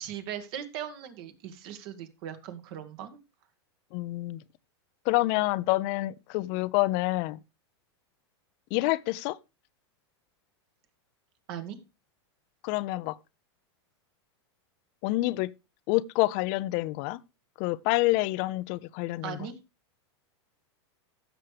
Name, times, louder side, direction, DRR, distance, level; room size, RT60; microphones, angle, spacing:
voice 1, 0.0-3.2 11.5-11.8 19.2-19.6, right 9 dB, 55° right, 1.8 m, -39 dB
voice 2, 3.9-4.4 5.1-7.4 8.7-9.4 12.6-13.1 15.0-15.5 15.9-17.2 17.6-19.4, left 19 dB, 50° left, 0.5 m, -27 dB
15.0 x 6.6 x 3.3 m
hypercardioid pair, 125°, 15 cm